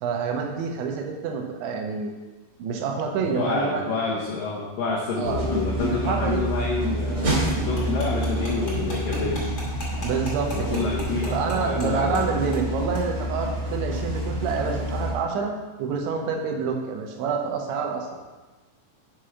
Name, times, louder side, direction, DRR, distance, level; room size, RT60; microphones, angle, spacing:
voice 1, 0.0-2.1 2.6-3.9 5.2-5.4 6.1-6.5 7.1-7.4 10.0-10.9 11.3-15.5 15.8-18.1, right 5 dB, 80° right, 2 dB, 3.1 m, -27 dB
voice 2, 3.2-9.5 10.5-12.4, left 3 dB, 85° left, -4 dB, 1.9 m, -28 dB
sound 1, 5.2-15.1, right 1 dB, 30° right, 2.7 m, -28 dB
sound 2, 7.5-11.9 12.1-12.2 12.5-12.7 12.9-13.0, left 1 dB, 60° left, 0.7 m, -38 dB
6.4 x 6.2 x 5.7 m, 1.2 s
omnidirectional pair, 5.5 m